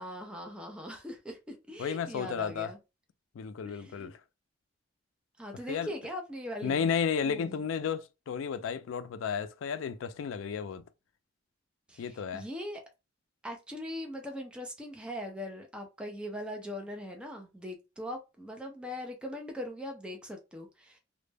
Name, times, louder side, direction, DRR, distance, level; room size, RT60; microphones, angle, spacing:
voice 1, 0.0-2.8 3.6-4.1 5.4-6.9 7.2-7.6 11.9-12.8 13.4-21.0, equal, 5° right, 0.4 m, -41 dB
voice 2, 1.8-2.7 3.4-4.1 5.7-5.9 6.6-10.8 12.0-12.5, left 6 dB, 75° left, 0.3 m, -33 dB
2.1 x 2.0 x 3.2 m
head